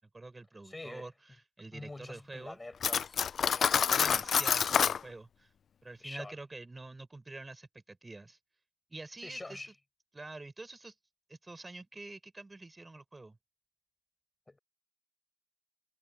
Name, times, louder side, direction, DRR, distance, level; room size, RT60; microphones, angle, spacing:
voice 1, 0.1-2.6 3.7-5.5 5.8-8.4 8.9-9.7 10.1-10.9 11.3-13.4, right 2 dB, 20° right, 5.6 m, -47 dB
voice 2, 0.6-1.1 1.7-3.9 6.0-6.3 9.2-9.7 14.5-14.6, left 2 dB, 15° left, 5.3 m, -46 dB
Cutlery silverware, 2.8-5.0, left 7 dB, 50° left, 0.4 m, -27 dB
supercardioid pair, 70°, 0 cm